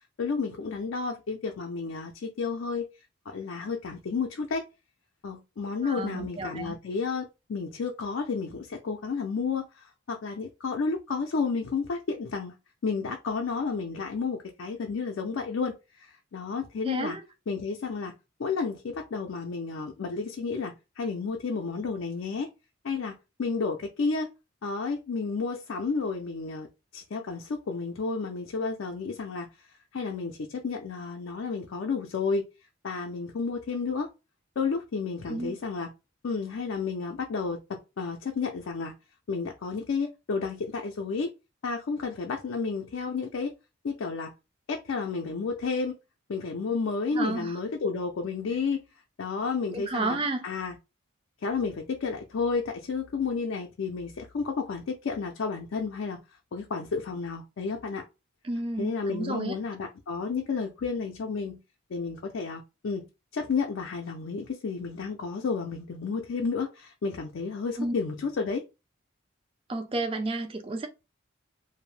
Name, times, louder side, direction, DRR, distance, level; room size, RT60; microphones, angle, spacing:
voice 1, 0.2-2.9 3.3-4.6 5.2-12.5 12.8-17.2 17.5-18.1 18.4-22.5 22.8-24.3 24.6-26.7 26.9-29.5 29.9-32.4 32.8-34.1 34.6-35.9 36.2-38.9 39.3-41.3 41.6-43.5 43.8-44.3 44.7-46.0 46.3-48.8 49.2-50.2 50.4-50.8 51.4-56.2 56.5-58.0 58.8-61.6 61.9-63.1 63.3-68.6, left 4 dB, 65° left, 0.4 m, -31 dB
voice 2, 5.8-6.7 16.8-17.2 35.3-35.6 47.1-47.6 49.7-50.4 58.4-59.6 67.8-67.9 69.7-70.9, right 2 dB, 25° right, 0.4 m, -31 dB
2.6 x 2.0 x 3.1 m
head